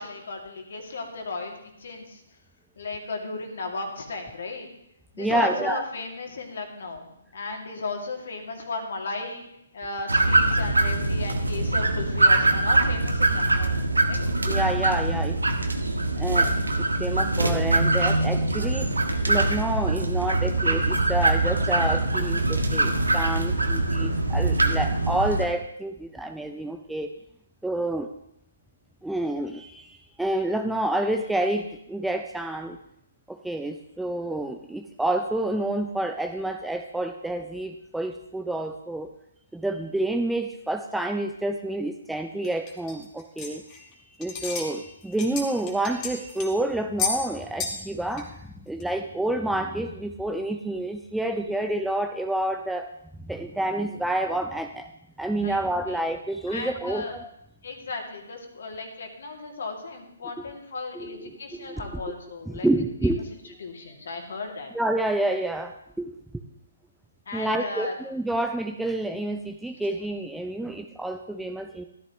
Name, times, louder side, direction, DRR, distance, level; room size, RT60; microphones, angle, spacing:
voice 1, 0.0-2.2 2.8-4.7 5.1-9.4 9.7-13.8 14.1-14.3 55.4-56.0 56.5-57.2 57.6-62.7 63.6-64.7 67.3-67.9, left 3 dB, 55° left, 2 dB, 2.5 m, -35 dB
voice 2, 5.2-5.9 14.5-15.4 16.2-27.1 27.6-28.1 29.0-32.8 33.3-39.1 39.5-43.9 44.2-52.9 53.2-54.9 55.2-57.3 60.4-60.5 60.9-61.8 62.5-63.6 64.7-66.4 67.3-71.8, right 1 dB, 5° right, 6 dB, 0.5 m, -29 dB
sound 1, 10.1-25.5, right 2 dB, 80° right, 1.4 m, -23 dB
sound 2, 42.4-43.9 44.2-44.7 45.0-46.5 47.0-47.2 47.6-47.8 48.1-48.2 48.8-48.9, left 5 dB, 20° left, 2.0 m, -31 dB
13.5 x 12.5 x 3.1 m, 0.79 s
figure-of-eight pair, 130°, 0 cm